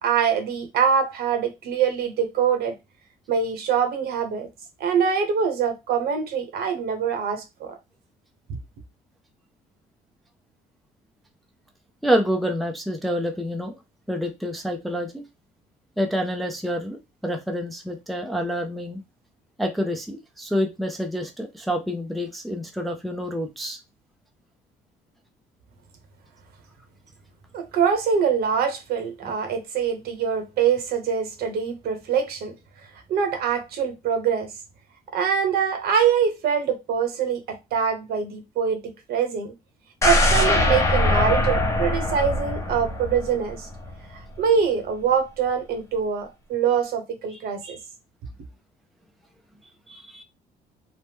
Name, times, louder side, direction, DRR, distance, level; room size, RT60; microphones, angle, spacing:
voice 1, 0.0-2.7 3.3-4.5 4.8-7.7 27.5-32.5 33.1-34.5 35.1-38.8 39.1-39.5 40.0-43.7 44.1-47.8, right 7 dB, 70° right, 0.9 m, -24 dB
voice 2, 12.0-13.8 14.1-15.2 16.0-19.0 19.6-23.8 47.3-47.4 49.9-50.2, equal, ahead, 0.4 m, -27 dB
sound 1, 40.0-44.0 44.4-44.5, left 1 dB, 15° left, 0.8 m, -22 dB
3.0 x 2.0 x 3.4 m
cardioid pair, 110°, 17 cm